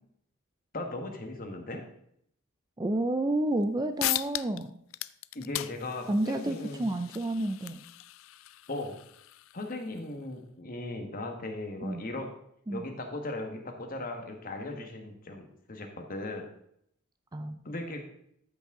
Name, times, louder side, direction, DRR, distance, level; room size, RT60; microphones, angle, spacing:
voice 1, 0.7-1.8 5.3-6.9 8.7-8.9 9.5-12.3 12.7-16.5 17.6-18.0, left 2 dB, 40° left, 3 dB, 1.5 m, -37 dB
voice 2, 2.8-4.8 6.1-7.8 11.8-12.0 12.7-12.9 17.3-17.7, right 1 dB, 20° right, 8 dB, 0.4 m, -30 dB
sound 1, 3.6-3.7 4.0-4.6 4.9-10.1, left 16 dB, 65° left, 0.3 m, -37 dB
13.5 x 6.0 x 3.8 m, 0.71 s
head